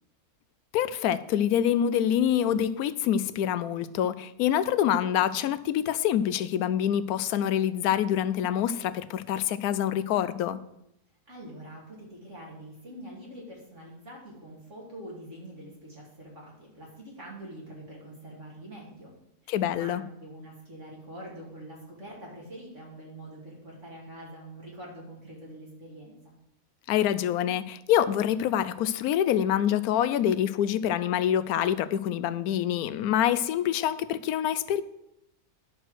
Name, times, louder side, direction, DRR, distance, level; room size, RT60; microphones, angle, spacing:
voice 1, 0.7-10.6 19.5-20.0 26.9-34.8, left 10 dB, 75° left, 15 dB, 1.0 m, -26 dB
voice 2, 11.3-19.1 19.4-26.3, right 1 dB, 50° right, -4 dB, 2.5 m, -45 dB
11.0 x 4.6 x 6.2 m, 0.83 s
omnidirectional pair, 1.6 m